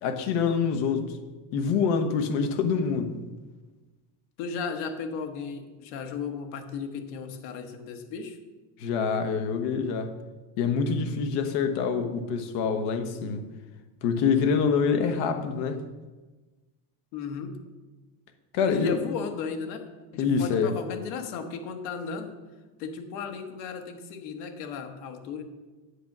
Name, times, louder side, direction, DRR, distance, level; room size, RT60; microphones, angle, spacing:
voice 1, 0.0-1.2 1.5-3.2 8.8-10.2 10.6-13.5 14.0-15.8 18.5-19.0 20.2-20.7, left 5 dB, 55° left, 1.1 m, -26 dB
voice 2, 4.4-8.4 17.1-17.6 18.7-19.8 20.1-22.3 22.8-25.4, left 5 dB, 75° left, 1.4 m, -35 dB
8.2 x 7.6 x 6.0 m
cardioid pair, 180°, 50 cm